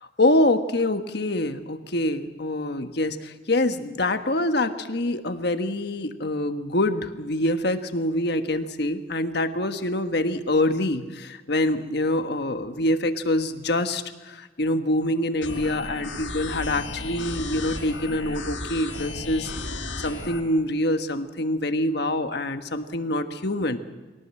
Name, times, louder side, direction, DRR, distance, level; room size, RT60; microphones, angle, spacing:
voice 1, 0.2-19.5 20.0-23.8, left 1 dB, 60° left, 8 dB, 1.4 m, -25 dB
sound 1, 15.4-20.4, left 2 dB, 80° left, 4.5 m, -34 dB
23.0 x 18.0 x 7.7 m, 1.3 s
head